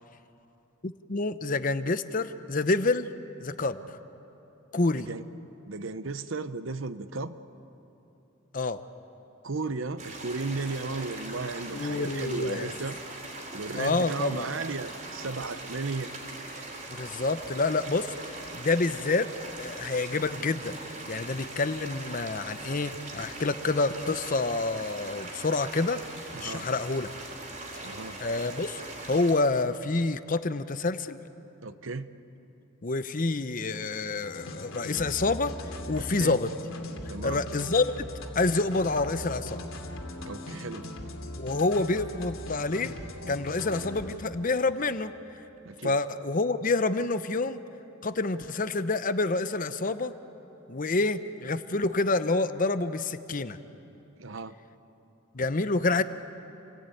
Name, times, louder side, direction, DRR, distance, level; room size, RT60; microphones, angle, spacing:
voice 1, 0.8-3.1 3.4-3.8 4.7-5.1 8.5-8.8 11.7-12.7 13.8-14.5 17.0-18.1 18.5-19.3 19.6-20.7 21.1-26.0 26.4-27.1 27.7-27.8 28.2-28.8 29.1-31.2 32.8-35.5 35.9-36.5 37.2-37.9 38.4-39.6 41.4-42.9 43.3-45.1 45.8-47.6 48.0-50.1 50.7-53.6 55.3-56.0, left 3 dB, 40° left, 11 dB, 0.8 m, -27 dB
voice 2, 4.9-5.2 5.7-7.4 9.4-13.0 13.5-16.1 26.3-26.7 27.8-28.2 31.6-32.1 35.9-36.4 37.1-37.4 40.2-40.9 45.6-46.0 54.2-54.5, right 3 dB, 65° right, 12 dB, 0.9 m, -35 dB
sound 1, 10.0-29.3, right 2 dB, 40° right, 4.0 m, -41 dB
sound 2, 34.2-44.2, left 1 dB, 80° left, 2.7 m, -40 dB
29.0 x 18.5 x 9.3 m, 3.0 s
head